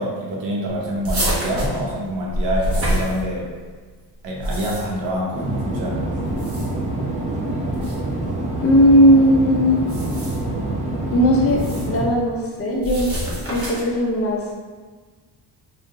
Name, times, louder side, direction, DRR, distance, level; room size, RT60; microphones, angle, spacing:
voice 1, 0.0-3.5 4.2-6.1, equal, 80° right, -3 dB, 1.0 m, -26 dB
sound 1, 1.0-3.7 4.2-5.1 6.2-6.9 7.7-8.0 9.8-10.5 11.5-12.0 12.8-14.0, equal, 35° right, 0.9 m, -26 dB
sound 2, 5.3-12.1, right 2 dB, 20° right, 0.5 m, -26 dB
voice 2, 8.6-9.8 11.1-13.1 13.4-14.4, equal, 35° left, -2 dB, 0.6 m, -17 dB
3.7 x 2.5 x 3.1 m, 1.4 s
cardioid pair, 135°, 42 cm